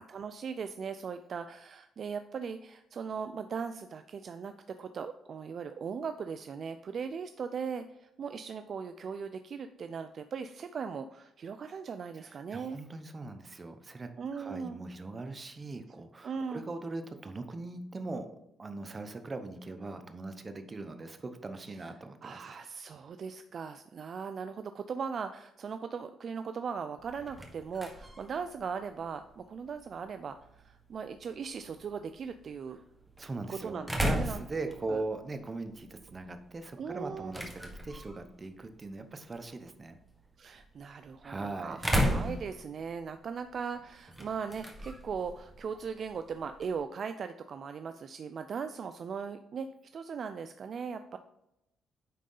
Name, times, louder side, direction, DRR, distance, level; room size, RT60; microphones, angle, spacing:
voice 1, 0.0-12.8 14.2-14.8 16.2-16.6 21.7-21.8 22.2-32.8 33.5-35.0 36.8-37.4 40.4-41.8 42.1-49.7 49.9-51.2, right 6 dB, 50° right, 9 dB, 0.4 m, -39 dB
voice 2, 12.1-18.3 18.6-22.5 33.2-40.0 41.2-41.8, right 3 dB, 30° right, 8 dB, 0.8 m, -40 dB
sound 1, 27.0-46.8, equal, 5° right, 1.4 m, -38 dB
9.3 x 3.7 x 3.8 m, 0.83 s
cardioid pair, 90°, 0 cm